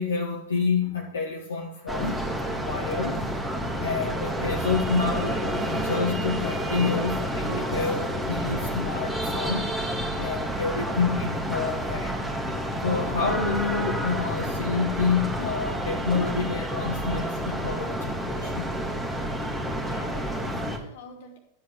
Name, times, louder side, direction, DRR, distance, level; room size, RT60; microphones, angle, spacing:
voice 1, 0.0-2.2 2.6-3.2 3.8-9.7 10.1-12.2 12.8-18.0 18.3-18.7, left 5 dB, 70° left, -2 dB, 1.7 m, -28 dB
sound 1, 1.9-20.8, equal, 5° right, 2.2 m, -29 dB
voice 2, 19.8-21.4, left 2 dB, 55° left, 2 dB, 2.6 m, -45 dB
12.5 x 8.5 x 5.0 m, 0.80 s
figure-of-eight pair, 90°, 0 cm